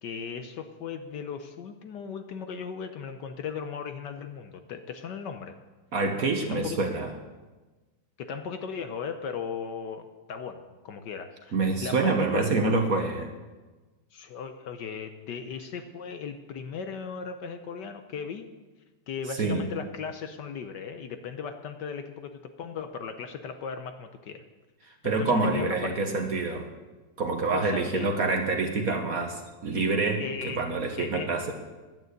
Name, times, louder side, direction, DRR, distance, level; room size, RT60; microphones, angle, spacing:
voice 1, 0.0-5.5 6.4-6.8 8.2-12.5 14.1-18.5 19.1-24.4 25.0-25.9 27.5-28.1 30.2-30.6 31.0-31.5, left 6 dB, 65° left, 7 dB, 1.2 m, -37 dB
voice 2, 5.9-7.1 11.5-13.3 19.4-19.6 25.0-26.7 27.2-31.5, right 3 dB, 50° right, 4 dB, 1.2 m, -26 dB
11.0 x 8.9 x 8.0 m, 1.2 s
omnidirectional pair, 2.3 m